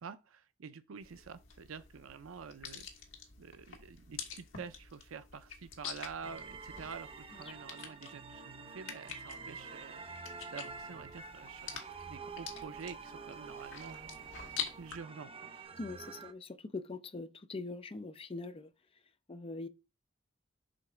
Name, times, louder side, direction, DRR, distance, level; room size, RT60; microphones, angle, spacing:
voice 1, 0.0-2.9 3.4-10.0 10.5-11.8 12.1-14.1 14.8-15.5, right 5 dB, 85° right, 0.5 m, -48 dB
sound 1, 1.0-15.0, left 7 dB, 75° left, 1.6 m, -47 dB
sound 2, 6.2-16.3, right 5 dB, 30° right, 0.6 m, -48 dB
sound 3, 9.5-15.7, right 2 dB, 45° right, 3.1 m, -64 dB
voice 2, 15.8-18.7 19.3-19.7, left 3 dB, 30° left, 0.5 m, -42 dB
5.2 x 3.8 x 5.8 m
head